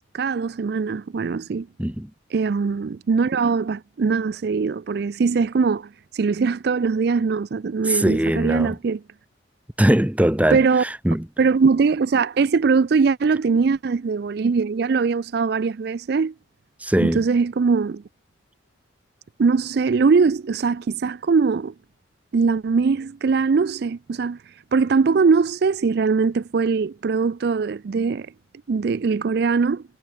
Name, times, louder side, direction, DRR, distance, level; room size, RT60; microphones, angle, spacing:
voice 1, 0.1-1.7 2.3-9.0 10.5-10.8 11.4-16.3 17.0-18.0 19.4-21.7 22.3-24.4 24.7-28.3 28.7-29.8, right 5 dB, 55° right, 0.4 m, -21 dB
voice 2, 1.8-2.1 7.8-8.7 9.8-11.3 16.8-17.2, right 1 dB, 5° right, 0.7 m, -21 dB
head